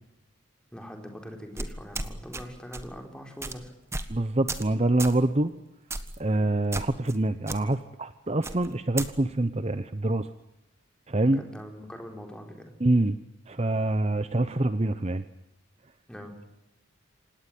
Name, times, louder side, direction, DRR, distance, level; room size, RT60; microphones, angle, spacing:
voice 1, 0.7-3.7 11.2-12.7 16.1-16.4, equal, 5° left, 3 dB, 4.3 m, -42 dB
sound 1, 1.6-2.4 2.7-2.9 3.4-3.6 3.9-4.1 4.5-4.7 5.0-5.2 5.9-6.2 6.7-7.2 7.5-7.6 8.4-9.1, right 2 dB, 15° right, 1.5 m, -34 dB
voice 2, 4.1-5.5 6.2-10.3 11.1-11.4 12.8-13.2 13.5-15.2, right 2 dB, 30° right, 12 dB, 0.8 m, -25 dB
28.0 x 18.0 x 9.2 m, 0.94 s
head